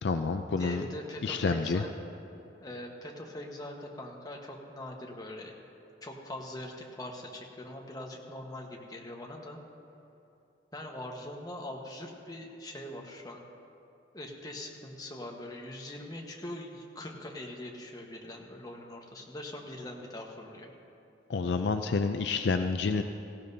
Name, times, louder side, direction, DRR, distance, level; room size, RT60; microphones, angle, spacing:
voice 1, 0.0-0.8 1.2-1.8 21.3-23.0, left 4 dB, 65° left, 8 dB, 0.4 m, -28 dB
voice 2, 0.6-1.9 2.6-5.5 6.0-9.6 10.7-13.4 14.1-20.7, left 1 dB, 20° left, 0 dB, 1.2 m, -42 dB
17.5 x 16.0 x 2.7 m, 2.7 s
head